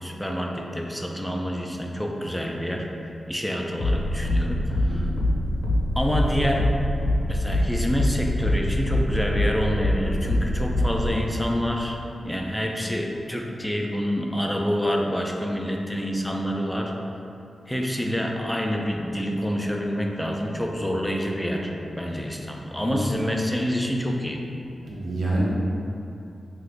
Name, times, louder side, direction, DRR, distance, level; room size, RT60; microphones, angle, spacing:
voice 1, 0.0-5.1 6.0-6.7 7.3-12.0 12.2-16.9 17.7-24.4, equal, 5° left, 0 dB, 0.3 m, -27 dB
sound 1, 3.8-11.2, left 1 dB, 80° left, 0.6 m, -24 dB
voice 2, 24.8-25.4, right 2 dB, 90° right, -6 dB, 0.6 m, -27 dB
2.9 x 2.4 x 3.4 m, 2.7 s
wide cardioid pair, 85°, 0 cm